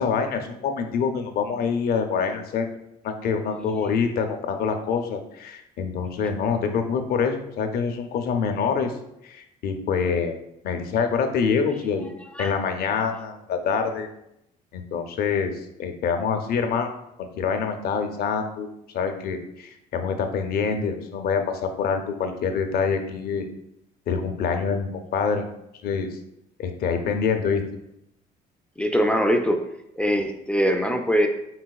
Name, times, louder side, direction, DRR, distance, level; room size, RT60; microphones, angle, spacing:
voice 1, 0.0-2.7 3.0-8.9 9.2-10.4 10.6-12.1 12.4-14.1 14.7-16.9 17.2-23.4 24.1-25.5 25.8-26.1 26.6-27.7, left 6 dB, 65° left, 6 dB, 0.6 m, -26 dB
voice 2, 28.8-29.6 30.0-31.3, equal, 5° left, 4 dB, 0.3 m, -22 dB
4.3 x 4.0 x 2.3 m, 0.81 s
cardioid pair, 110°, 17 cm